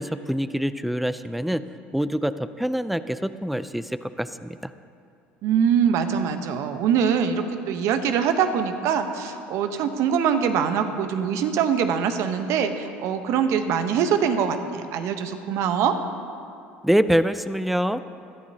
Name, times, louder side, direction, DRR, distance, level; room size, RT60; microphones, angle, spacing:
voice 1, 0.0-1.6 1.9-4.7 16.8-18.0, equal, ahead, 13 dB, 0.5 m, -25 dB
voice 2, 5.4-15.9, right 7 dB, 65° right, 8 dB, 1.0 m, -23 dB
19.5 x 13.0 x 2.8 m, 2.5 s
hypercardioid pair, 70°, 5 cm